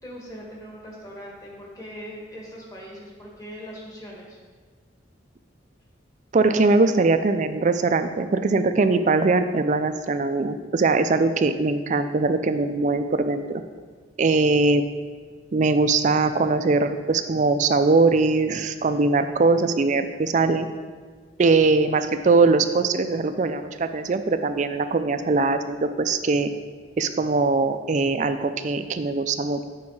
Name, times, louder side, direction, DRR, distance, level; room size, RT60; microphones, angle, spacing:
voice 1, 0.0-4.4, equal, 20° left, -3 dB, 1.6 m, -40 dB
voice 2, 6.3-13.6 14.2-14.8 15.5-20.7 21.4-26.5 27.0-29.6, right 3 dB, 40° right, 9 dB, 0.4 m, -21 dB
8.5 x 4.7 x 4.7 m, 1.5 s
head